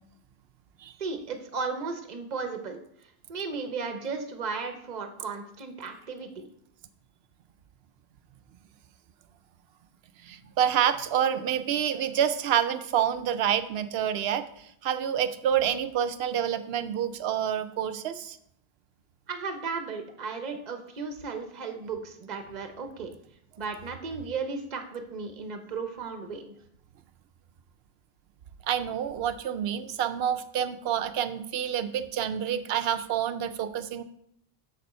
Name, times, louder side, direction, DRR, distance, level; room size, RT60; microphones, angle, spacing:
voice 1, 1.0-2.8 3.3-6.5 19.3-23.1 23.6-26.5, right 4 dB, 45° right, 6 dB, 0.9 m, -35 dB
voice 2, 10.2-14.4 14.8-18.4 28.7-34.0, right 9 dB, 80° right, 11 dB, 0.8 m, -28 dB
6.9 x 6.8 x 4.2 m, 0.71 s
omnidirectional pair, 1.0 m